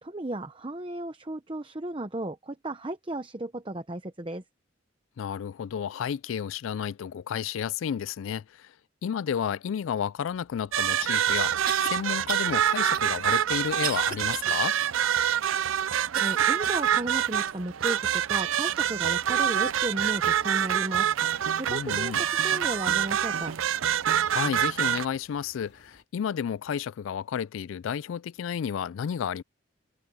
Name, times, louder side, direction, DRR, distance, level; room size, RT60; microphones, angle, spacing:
voice 1, 0.0-4.4 16.2-23.5, right 1 dB, 25° right, 0.8 m, -35 dB
voice 2, 5.2-8.7 9.0-14.8 21.7-22.2 24.3-29.4, left 8 dB, 85° left, 0.3 m, -32 dB
sound 1, 10.6-10.7 11.7-11.9 12.3-12.5 12.9-14.5 15.0-15.1 16.1-16.9 17.5-17.6 18.3-18.4, right 8 dB, 45° right, 2.2 m, -36 dB
sound 2, 10.7-25.1, right 9 dB, 90° right, 0.5 m, -26 dB
sound 3, 18.8-26.0, left 2 dB, 60° left, 3.0 m, -58 dB
head